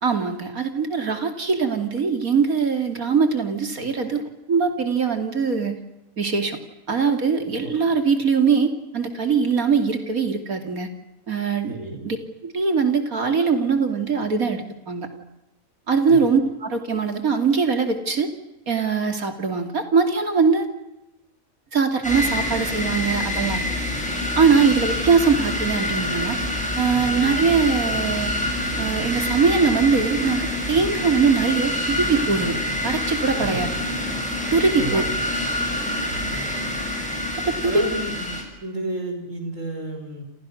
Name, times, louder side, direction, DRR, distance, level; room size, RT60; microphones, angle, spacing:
voice 1, 0.0-4.2 4.5-5.8 6.2-6.6 6.9-10.9 11.3-11.7 12.0-12.2 12.4-15.1 15.9-18.3 18.7-20.7 21.7-23.6 24.4-26.4 26.8-28.4 28.8-32.6 32.8-33.7 34.5-35.0 37.4-37.8, right 5 dB, 85° right, 6 dB, 3.3 m, -21 dB
voice 2, 11.7-12.0 16.1-16.2 26.9-27.1 33.3-33.7 34.7-35.1 36.3-36.5 37.6-38.3 38.6-40.2, right 1 dB, 65° right, 4 dB, 5.9 m, -32 dB
sound 1, 22.0-38.4, left 1 dB, 5° left, 6.7 m, -26 dB
29.0 x 28.0 x 6.5 m, 0.91 s
omnidirectional pair, 1.5 m